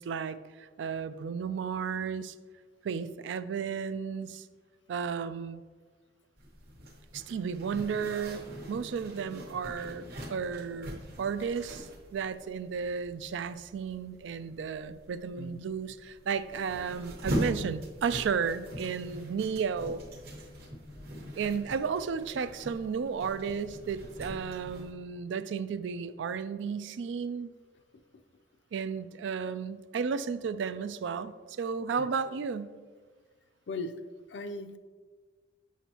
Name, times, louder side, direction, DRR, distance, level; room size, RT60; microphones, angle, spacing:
voice 1, 0.0-2.3 2.8-4.5 4.9-5.6 7.1-20.0 21.4-27.5 28.7-32.7, right 6 dB, 75° right, 12 dB, 0.3 m, -33 dB
Zipper (clothing), 6.4-24.9, equal, 55° right, 1.1 m, -42 dB
voice 2, 34.3-34.8, left 2 dB, 70° left, 9 dB, 0.5 m, -38 dB
7.2 x 6.0 x 2.9 m, 1.5 s
head